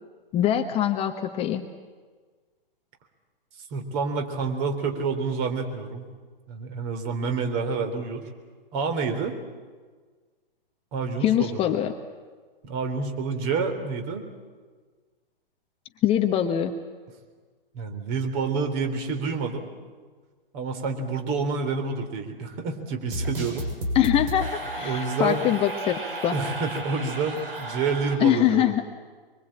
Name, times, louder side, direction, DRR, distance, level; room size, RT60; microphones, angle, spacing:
voice 1, 0.3-1.7 11.2-11.9 16.0-16.8 23.9-26.4 28.2-28.8, left 11 dB, 20° left, 6 dB, 1.0 m, -23 dB
voice 2, 3.7-6.0 6.5-8.3 8.7-9.4 10.9-11.6 12.6-14.2 17.7-19.7 20.5-23.7 24.8-25.5 26.3-28.7, right 4 dB, 35° right, 6 dB, 3.7 m, -28 dB
sound 1, 23.1-28.1, equal, 70° right, 6.7 m, -32 dB
24.0 x 23.5 x 8.7 m, 1.5 s
figure-of-eight pair, 125°, 29 cm